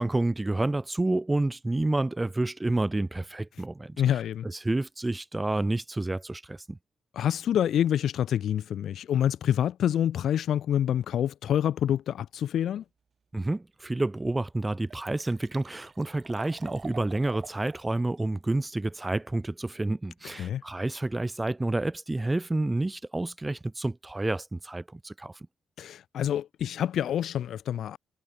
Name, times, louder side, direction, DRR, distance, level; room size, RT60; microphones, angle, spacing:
voice 1, 0.0-4.0 4.4-6.8 13.3-25.3, right 2 dB, 15° right, 0.7 m, -29 dB
voice 2, 4.0-4.5 7.1-12.8 20.2-20.6 25.8-28.0, left 10 dB, 70° left, 1.2 m, -27 dB
Liquid, 13.7-13.8 14.3-14.4 14.6-17.8 18.2-18.3, right 5 dB, 40° right, 5.5 m, -47 dB
cardioid pair, 90°, 0 cm